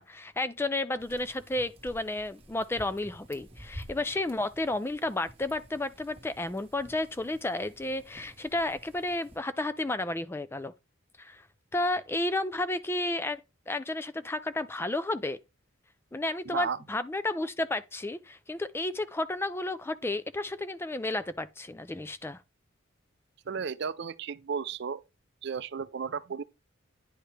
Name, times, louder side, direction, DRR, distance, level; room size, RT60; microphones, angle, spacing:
voice 1, 0.0-10.7 11.2-11.4 11.7-13.4 13.7-15.4 16.1-22.4, left 2 dB, 10° left, 0.3 m, -32 dB
sound 1, 1.0-9.4, equal, 25° right, 1.3 m, -51 dB
voice 2, 23.5-25.0 25.4-26.4, right 6 dB, 55° right, 0.4 m, -34 dB
10.0 x 4.7 x 3.3 m
head